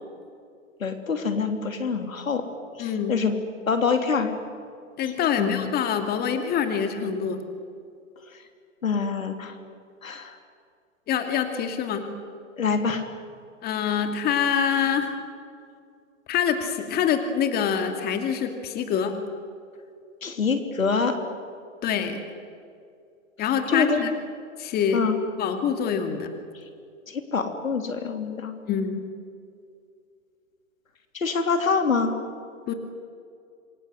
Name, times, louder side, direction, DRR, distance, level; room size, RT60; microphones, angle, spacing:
voice 1, 0.8-2.5 2.8-3.3 3.6-4.3 5.0-5.1 5.4-5.7 8.8-9.5 10.0-10.3 12.6-13.1 20.2-21.2 23.7-24.0 24.9-25.2 27.1-28.5 31.1-32.1, left 5 dB, 80° left, 7 dB, 3.2 m, -25 dB
voice 2, 2.8-3.2 5.0-7.4 11.1-12.1 13.6-15.2 16.3-19.2 21.8-22.2 23.4-24.1 24.6-25.0 25.4-26.3 28.7-29.1 32.7-32.8, left 7 dB, 25° left, 6 dB, 2.5 m, -25 dB
27.5 x 24.0 x 7.8 m, 2.3 s
hypercardioid pair, 120°, 40 cm